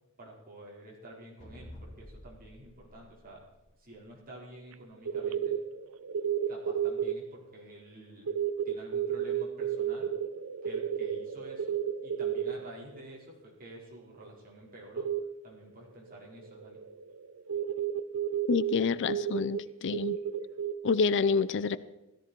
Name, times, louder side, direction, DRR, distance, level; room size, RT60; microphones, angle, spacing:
voice 1, 0.2-3.4 3.8-5.6 6.5-8.3 8.6-10.1 10.6-15.1 15.4-16.8, right 1 dB, 40° right, -4 dB, 5.0 m, -49 dB
sound 1, 1.4-4.1, left 1 dB, 35° left, 3.2 m, -50 dB
sound 2, 4.7-4.8 5.1-7.2 8.3-13.0 15.0-15.2 16.2-18.8 19.1-19.6 19.9-20.7, right 9 dB, 70° right, 0.6 m, -32 dB
voice 2, 18.5-20.2 20.8-21.8, left 5 dB, 55° left, 16 dB, 0.5 m, -28 dB
17.0 x 13.5 x 4.6 m, 1.0 s
head